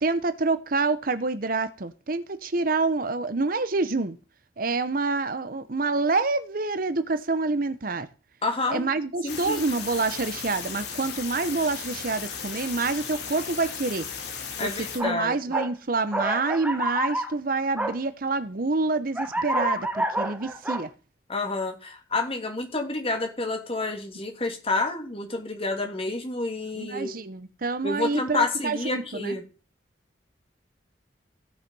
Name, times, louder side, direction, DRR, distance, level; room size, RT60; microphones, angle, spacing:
voice 1, 0.0-4.2 4.6-8.1 8.7-14.1 14.6-20.9 26.8-29.4, right 3 dB, 50° right, 0.8 m, -27 dB
voice 2, 8.4-8.9 9.2-9.6 14.6-15.4 21.3-27.1 27.8-29.5, left 2 dB, 30° left, 2.8 m, -29 dB
sound 1, 9.3-15.0, left 6 dB, 65° left, 3.1 m, -36 dB
sound 2, 15.0-15.2 15.5-15.7 16.1-17.3 17.8-17.9 19.2-20.8, right 1 dB, 10° right, 1.5 m, -28 dB
16.0 x 6.5 x 5.5 m
head